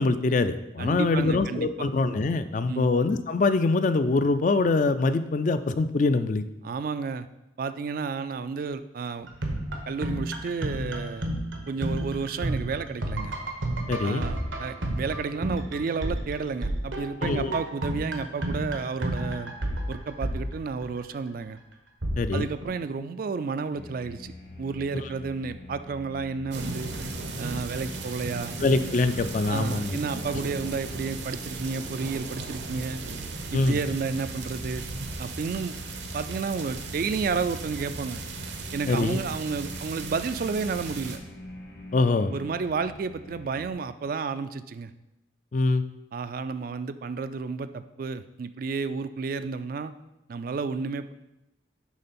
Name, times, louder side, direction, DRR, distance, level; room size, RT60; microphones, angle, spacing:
voice 1, 0.0-6.4 13.9-14.2 17.2-17.6 22.2-22.5 25.0-25.1 28.6-30.0 33.5-33.8 38.9-39.2 41.9-42.3 45.5-45.8, left 3 dB, 40° left, 11 dB, 0.4 m, -24 dB
voice 2, 0.8-1.9 2.7-2.9 6.6-7.3 7.6-9.3 9.9-11.3 11.7-13.3 14.0-19.5 19.9-21.6 22.3-24.3 24.6-26.9 27.4-28.6 29.5-33.0 33.5-34.9 35.2-35.8 36.1-38.2 38.7-41.2 42.3-44.9 46.1-49.9 50.3-51.1, right 5 dB, 50° right, 12 dB, 0.3 m, -31 dB
sound 1, 9.2-21.1 22.0-22.6, right 1 dB, 90° right, 1.2 m, -31 dB
sound 2, 23.7-43.7, left 1 dB, 65° left, 1.5 m, -44 dB
sound 3, 26.5-41.2, right 3 dB, 70° right, 0.8 m, -37 dB
10.5 x 3.8 x 4.3 m, 0.92 s
head